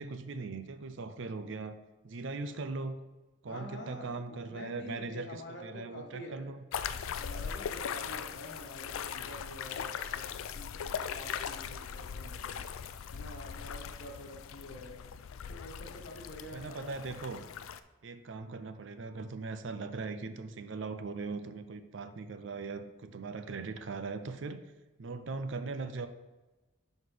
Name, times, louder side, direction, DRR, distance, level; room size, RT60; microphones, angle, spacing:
voice 1, 0.0-1.8 2.0-3.0 3.4-6.6 16.5-17.4 18.0-24.6 25.0-26.1, right 3 dB, 65° right, 10 dB, 0.5 m, -39 dB
voice 2, 3.5-6.5 7.2-12.6 13.1-15.0 15.5-16.9, left 1 dB, 55° left, 1 dB, 1.3 m, -47 dB
sound 1, 6.7-17.8, left 7 dB, 85° left, 0.4 m, -40 dB
11.0 x 4.3 x 3.4 m, 1.2 s
head